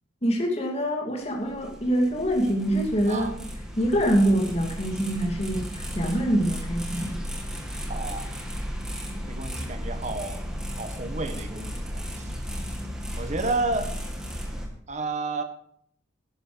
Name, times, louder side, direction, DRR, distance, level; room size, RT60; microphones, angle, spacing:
voice 1, 0.2-3.3 3.8-7.2, right 1 dB, 35° left, 0 dB, 2.6 m, -25 dB
sound 1, 1.2-14.7, equal, 5° right, 2.4 m, -35 dB
voice 2, 7.9-8.3 9.3-10.5 10.8-11.7 12.2-12.7 13.2-13.9 14.9-15.4, right 3 dB, 40° right, 7 dB, 1.6 m, -31 dB
12.5 x 11.5 x 5.2 m, 0.66 s
head